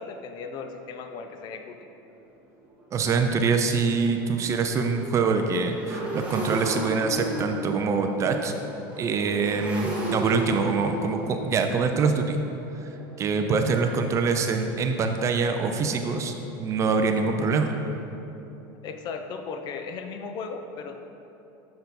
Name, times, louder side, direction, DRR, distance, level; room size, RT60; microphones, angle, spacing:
voice 1, 0.0-1.9 18.8-21.0, left 5 dB, 40° left, 6 dB, 0.4 m, -36 dB
Motorcycle, 2.1-2.2 2.7-2.8 3.1-14.7, right 1 dB, 10° right, 1.3 m, -35 dB
voice 2, 2.9-8.5 9.0-12.4 12.7-12.9 13.2-16.3 16.6-17.8, right 4 dB, 25° right, 5 dB, 0.3 m, -24 dB
6.7 x 4.2 x 4.0 m, 3.0 s
supercardioid pair, 140°, 11 cm